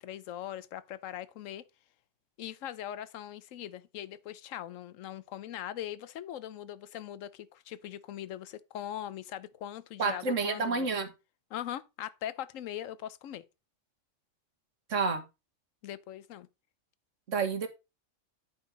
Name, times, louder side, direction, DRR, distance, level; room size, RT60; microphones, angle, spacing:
voice 1, 0.0-1.6 2.4-10.9 11.5-13.4 15.8-16.5, left 11 dB, 85° left, 1.0 m, -41 dB
voice 2, 10.0-11.1 14.9-15.2 17.3-17.7, right 4 dB, 75° right, 1.7 m, -29 dB
10.5 x 5.2 x 3.9 m
omnidirectional pair, 1.3 m